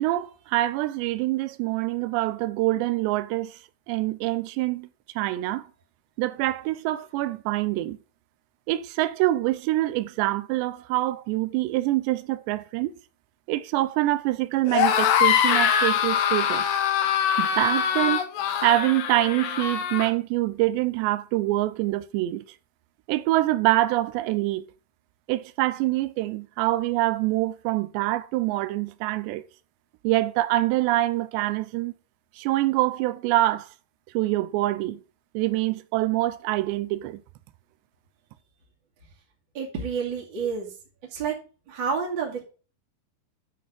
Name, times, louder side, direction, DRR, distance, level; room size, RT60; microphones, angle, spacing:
voice 1, 0.0-3.5 3.9-4.9 5.2-5.7 6.2-8.0 8.7-12.9 13.5-16.7 17.4-18.2 18.6-22.4 23.1-24.6 25.3-29.4 30.0-31.9 32.4-33.7 34.1-35.0 35.3-37.2, right 17 dB, 80° right, 2.9 m, -25 dB
sound 1, 14.7-20.1, left 8 dB, 65° left, 2.4 m, -23 dB
voice 2, 39.5-40.7 41.1-41.4 41.7-42.4, right 6 dB, 30° right, 2.5 m, -29 dB
10.0 x 6.1 x 5.0 m
omnidirectional pair, 5.1 m